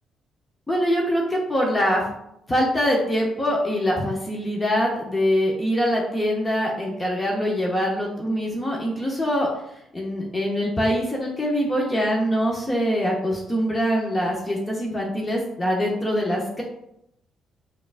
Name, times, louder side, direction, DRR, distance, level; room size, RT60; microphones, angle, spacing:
voice 1, 0.7-2.0 2.5-9.5 9.9-16.6, equal, 20° left, -2 dB, 0.8 m, -23 dB
4.8 x 2.4 x 2.4 m, 0.78 s
cardioid pair, 90°, 0 cm